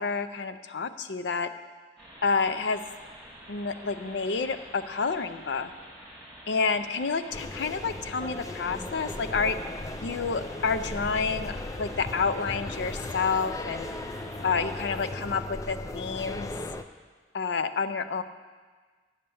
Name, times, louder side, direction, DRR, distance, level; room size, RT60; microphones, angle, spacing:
voice 1, 0.0-1.5 2.2-2.8 3.5-5.7 6.5-9.6 10.0-11.5 11.8-13.9 14.4-16.5 17.3-18.2, left 5 dB, 75° left, 10 dB, 0.5 m, -29 dB
sound 1, 2.0-14.9, equal, 5° left, 2.3 m, -48 dB
sound 2, 7.3-16.8, left 2 dB, 20° left, 0.4 m, -37 dB
8.6 x 6.7 x 7.0 m, 1.4 s
head